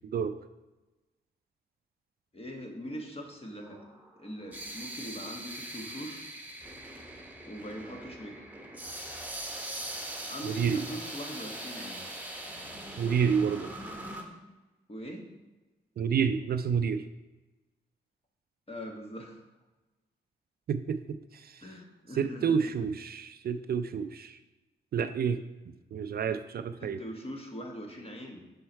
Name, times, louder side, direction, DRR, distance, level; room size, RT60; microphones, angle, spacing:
voice 1, 2.3-3.9 4.2-6.2 7.4-8.4 10.3-12.0 14.9-15.3 18.7-19.4 21.6-22.7 26.8-28.4, equal, 30° left, 2 dB, 1.3 m, -42 dB
sound 1, 3.7-14.2, right 1 dB, 10° right, 1.1 m, -41 dB
voice 2, 10.4-10.9 13.0-13.7 16.0-17.1 20.7-21.6 22.1-24.4 24.9-25.4 25.9-27.0, right 7 dB, 55° right, 11 dB, 0.4 m, -29 dB
5.5 x 4.5 x 4.4 m, 1.1 s
supercardioid pair, 50°, 19 cm